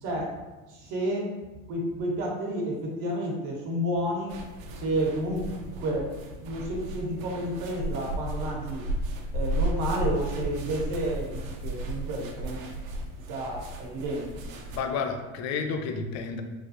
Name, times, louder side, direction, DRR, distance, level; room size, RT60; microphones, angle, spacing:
voice 1, 0.0-0.3 0.7-1.3 1.7-4.3 4.7-5.4 5.7-6.1 6.4-8.9 9.3-12.6 13.3-14.3, right 1 dB, 55° right, -1 dB, 1.0 m, -30 dB
sound 1, 4.3-14.8, right 1 dB, 90° right, 0.6 m, -34 dB
voice 2, 14.7-16.4, left 5 dB, 45° left, 6 dB, 0.5 m, -31 dB
3.2 x 2.3 x 2.7 m, 1.1 s
hypercardioid pair, 95°, 39 cm